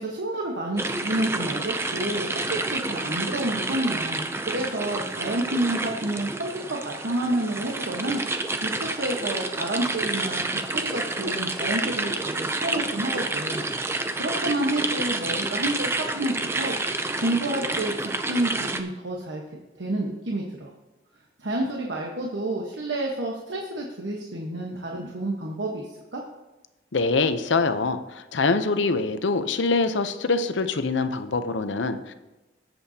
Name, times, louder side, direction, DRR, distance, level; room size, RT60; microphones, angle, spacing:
voice 1, 0.0-2.4 2.7-13.8 14.1-16.8 17.2-19.4 19.8-20.7 21.4-26.2, right 1 dB, 80° right, -1 dB, 1.2 m, -29 dB
sound 1, 0.8-18.8, right 2 dB, 15° right, 0.5 m, -29 dB
voice 2, 26.9-32.1, left 3 dB, 85° left, 10 dB, 0.7 m, -24 dB
18.0 x 7.8 x 2.8 m, 1.1 s
head